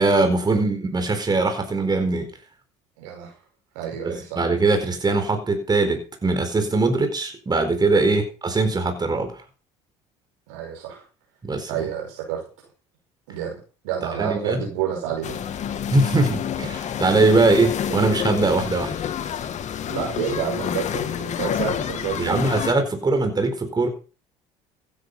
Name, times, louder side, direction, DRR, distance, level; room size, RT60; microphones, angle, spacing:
voice 1, 0.0-2.3 4.0-9.4 11.4-11.8 14.2-14.6 15.9-18.9 22.2-23.9, right 3 dB, 25° right, 6 dB, 4.6 m, -21 dB
voice 2, 3.0-3.3 3.7-4.4 8.0-8.2 10.5-11.0 11.7-12.4 13.3-13.6 13.8-15.4 19.9-22.4, right 8 dB, 80° right, -1 dB, 5.5 m, -29 dB
sound 1, 15.2-22.7, left 9 dB, 50° left, 2.3 m, -28 dB
16.0 x 10.5 x 5.6 m, 0.36 s
hypercardioid pair, 75°, 16 cm